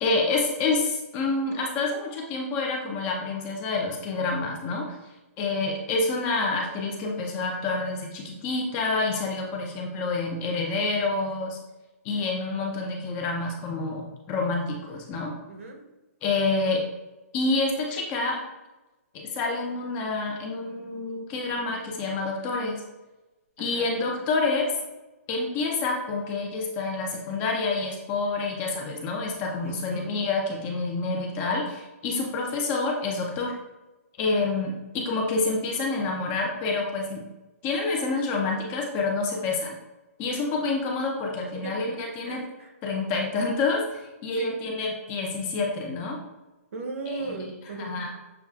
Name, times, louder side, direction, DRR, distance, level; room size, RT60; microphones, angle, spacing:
voice 1, 0.0-4.9 5.4-11.6 12.0-15.3 16.2-16.8 17.3-18.4 19.1-22.8 23.6-24.7 25.3-33.5 34.2-37.2 37.6-39.8 40.2-42.4 42.8-46.2 47.1-47.5 47.8-48.1, left 3 dB, 20° left, 0 dB, 0.5 m, -28 dB
voice 2, 15.5-15.8 23.6-23.9 29.6-30.1 40.3-40.4 41.5-41.8 42.2-42.7 44.4-44.6 46.7-48.0, right 3 dB, 55° right, 2 dB, 1.0 m, -37 dB
6.8 x 2.3 x 2.3 m, 1.1 s
hypercardioid pair, 155°, 8 cm